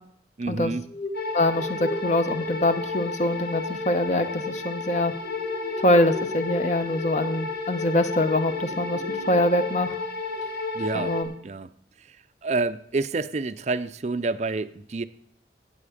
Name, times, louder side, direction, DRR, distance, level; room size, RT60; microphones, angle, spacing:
voice 1, 0.4-0.8 10.7-11.2 11.4-11.7 12.0-12.2 12.4-15.0, right 3 dB, 40° right, 0.5 m, -28 dB
sound 1, 0.8-9.9 10.2-10.5 10.8-10.9, left 1 dB, 75° left, 2.2 m, -40 dB
sound 2, 1.1-11.2, left 3 dB, 55° left, 1.8 m, -32 dB
voice 2, 1.3-5.1 5.8-9.9 10.9-11.3, left 1 dB, 40° left, 1.0 m, -24 dB
17.0 x 7.8 x 5.0 m
head